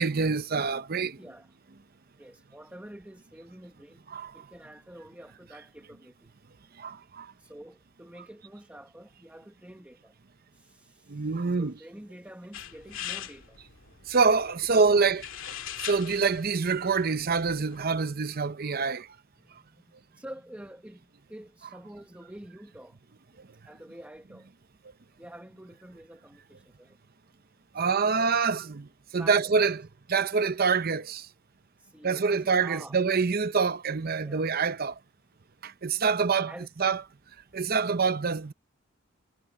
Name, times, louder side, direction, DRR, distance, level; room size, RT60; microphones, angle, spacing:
voice 1, 0.0-1.2 4.1-4.3 6.8-7.3 11.1-11.7 14.1-15.2 15.8-19.1 27.7-29.8 30.1-31.3 32.0-34.9 35.6-36.5 36.8-37.0 37.5-38.5, right 5 dB, 50° right, 0.7 m, -26 dB
voice 2, 1.2-1.5 2.2-4.0 4.3-6.3 7.4-10.1 10.5-13.6 14.7-15.1 19.4-23.0 23.6-24.5 25.2-27.0 27.7-28.4 29.2-29.5 31.8-33.0 34.2-34.4 36.5-36.7, right 1 dB, 10° right, 1.3 m, -48 dB
sound 1, 12.5-18.0, left 9 dB, 85° left, 2.2 m, -42 dB
head